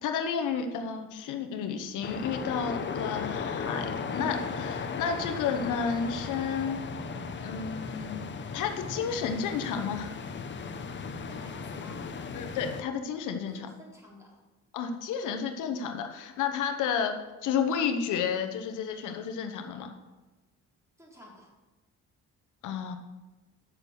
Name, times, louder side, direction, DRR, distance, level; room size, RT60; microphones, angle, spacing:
voice 1, 0.0-6.9 7.4-10.1 12.3-13.7 14.7-19.9 22.6-22.9, left 6 dB, 85° left, 6 dB, 1.0 m, -31 dB
sound 1, 2.0-12.8, left 5 dB, 40° left, 0.8 m, -36 dB
voice 2, 11.2-12.1 13.5-14.4 21.0-21.5, equal, 10° right, -3 dB, 3.4 m, -51 dB
7.4 x 6.3 x 6.8 m, 1.1 s
cardioid pair, 90°, 30 cm